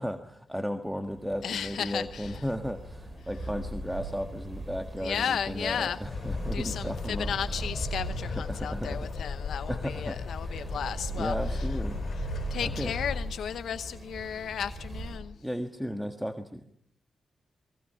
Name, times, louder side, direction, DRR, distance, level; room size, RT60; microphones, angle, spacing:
voice 1, 0.0-7.3 8.2-9.1 9.6-10.2 10.4-10.7 11.2-12.0 12.6-12.9 15.4-16.6, equal, 5° right, 6 dB, 1.6 m, -35 dB
sound 1, 1.0-15.2, right 1 dB, 35° right, 6.9 m, -38 dB
voice 2, 1.4-2.4 5.0-6.0 6.5-11.7 12.1-15.4, left 8 dB, 85° left, 10 dB, 0.8 m, -34 dB
sound 2, 6.0-13.2, left 5 dB, 65° left, 3.2 m, -37 dB
28.0 x 22.0 x 5.7 m, 0.68 s
cardioid pair, 75°, 0 cm